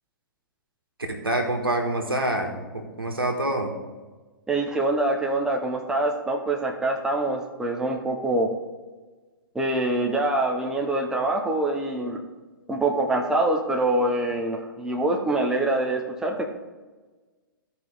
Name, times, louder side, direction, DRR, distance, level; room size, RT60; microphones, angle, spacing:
voice 1, 1.1-3.7, right 1 dB, 85° right, 2 dB, 1.6 m, -26 dB
voice 2, 4.5-8.5 9.5-12.2 12.7-16.5, right 2 dB, 5° right, 1 dB, 0.9 m, -25 dB
14.5 x 5.3 x 3.5 m, 1.3 s
figure-of-eight pair, 115°, 12 cm